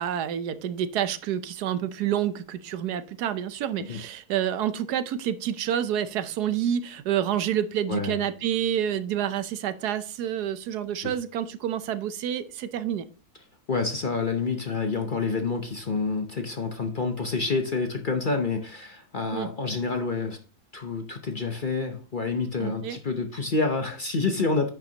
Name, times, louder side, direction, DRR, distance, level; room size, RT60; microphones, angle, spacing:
voice 1, 0.0-13.1 19.3-19.5 22.6-23.0, right 10 dB, 90° right, 1.3 m, -28 dB
voice 2, 13.7-20.4 20.7-24.7, left 4 dB, 40° left, 0.8 m, -28 dB
10.0 x 7.3 x 2.8 m
omnidirectional pair, 1.6 m